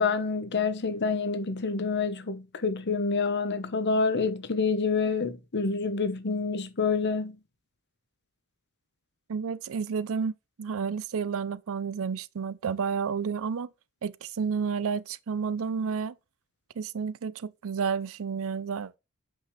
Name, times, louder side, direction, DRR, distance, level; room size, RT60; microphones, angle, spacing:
voice 1, 0.0-7.4, left 4 dB, 50° left, 1.0 m, -27 dB
voice 2, 9.3-10.3 10.6-13.7 14.0-16.1 16.8-19.0, right 6 dB, 70° right, 0.5 m, -31 dB
8.8 x 5.4 x 3.2 m
head